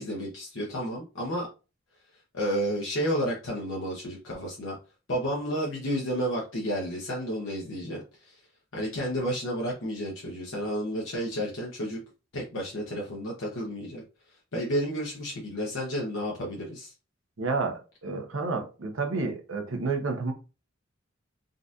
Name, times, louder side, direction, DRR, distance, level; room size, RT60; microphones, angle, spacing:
voice 1, 0.0-1.5 2.3-4.8 5.1-8.4 8.7-12.0 12.3-14.0 14.5-16.9, equal, 70° left, 0.9 m, -31 dB
voice 2, 17.4-20.3, right 4 dB, 80° right, 0.8 m, -30 dB
3.9 x 2.6 x 2.4 m
head